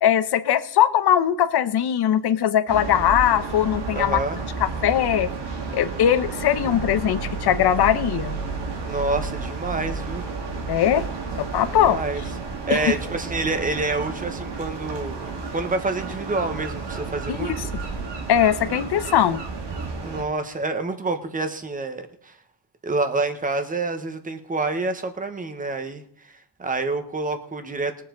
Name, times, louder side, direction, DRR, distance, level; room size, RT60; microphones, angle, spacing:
voice 1, 0.0-4.2 4.6-5.3 5.7-8.4 10.7-11.0 11.4-12.0 12.7-12.9 17.3-17.6 18.3-19.4, left 10 dB, 70° left, 1.0 m, -20 dB
sound 1, 2.7-20.2, right 4 dB, 85° right, 2.3 m, -31 dB
voice 2, 3.9-4.4 8.8-10.3 11.7-12.2 12.7-17.6 20.0-22.3 22.8-28.0, right 3 dB, 20° right, 1.2 m, -28 dB
21.0 x 7.6 x 3.9 m
wide cardioid pair, 180°, 40 cm